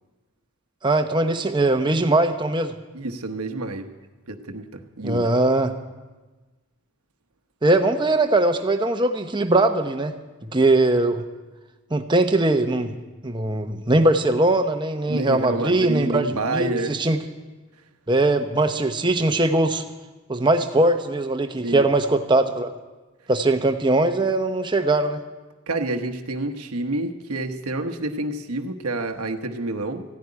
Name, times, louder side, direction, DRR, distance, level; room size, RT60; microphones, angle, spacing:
voice 1, 0.8-2.7 5.0-5.7 7.6-10.1 10.5-11.2 11.9-13.0 13.2-17.2 18.1-19.8 20.3-22.7 23.3-25.2, right 2 dB, 20° right, 6 dB, 0.8 m, -20 dB
voice 2, 2.9-3.9 4.3-5.2 15.1-17.0 21.6-21.9 25.7-30.0, right 2 dB, 90° right, 6 dB, 1.1 m, -28 dB
15.0 x 7.9 x 9.8 m, 1.2 s
head